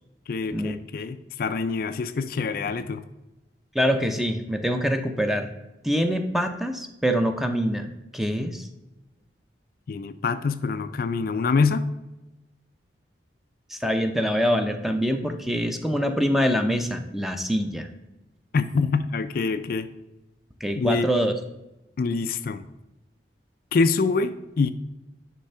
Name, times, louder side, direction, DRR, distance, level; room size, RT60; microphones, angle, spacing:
voice 1, 0.3-3.0 9.9-11.9 18.5-19.9 20.8-21.1 22.0-22.6 23.7-24.7, left 4 dB, 55° left, 11 dB, 0.4 m, -25 dB
voice 2, 3.7-5.5 5.8-8.7 13.7-17.9 20.6-21.3, equal, ahead, 6 dB, 0.6 m, -25 dB
10.0 x 3.4 x 5.5 m, 0.98 s
head